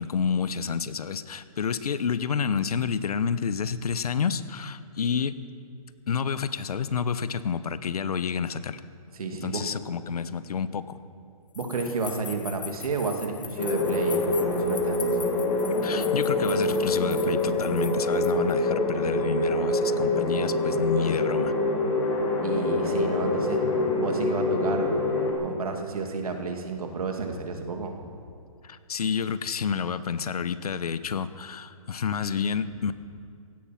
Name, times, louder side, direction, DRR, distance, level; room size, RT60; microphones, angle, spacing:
voice 1, 0.0-5.4 6.1-8.8 9.4-11.0 15.8-21.5 28.6-32.9, left 6 dB, 80° left, 14 dB, 0.9 m, -29 dB
voice 2, 9.1-9.6 11.5-15.2 17.0-17.3 22.4-25.0 25.4-28.0, right 4 dB, 75° right, 4 dB, 2.3 m, -31 dB
sound 1, 11.5-18.5, left 7 dB, 60° left, 1.2 m, -41 dB
sound 2, 13.6-25.3, left 2 dB, 20° left, 1.9 m, -25 dB
16.0 x 12.0 x 5.9 m, 2.4 s
hypercardioid pair, 180°, 19 cm